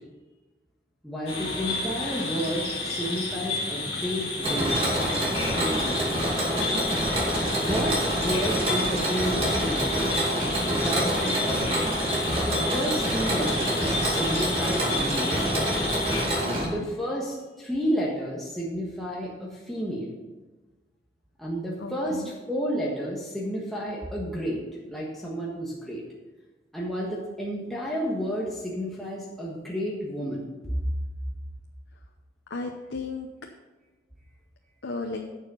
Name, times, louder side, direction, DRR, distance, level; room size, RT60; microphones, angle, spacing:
voice 1, 1.0-4.9 5.5-6.0 6.5-6.8 7.6-10.3 10.7-11.9 12.4-15.5 16.6-20.1 21.4-26.0 26.7-30.8, equal, ahead, -5 dB, 1.4 m, -31 dB
sound 1, 1.3-16.2, left 3 dB, 30° left, 2.5 m, -31 dB
Mechanisms, 4.4-16.6, right 1 dB, 30° right, 2.3 m, -27 dB
voice 2, 16.4-16.9 21.8-22.3 32.5-33.3 34.8-35.2, left 3 dB, 85° left, 2 dB, 0.8 m, -35 dB
11.0 x 6.5 x 5.6 m, 1.2 s
head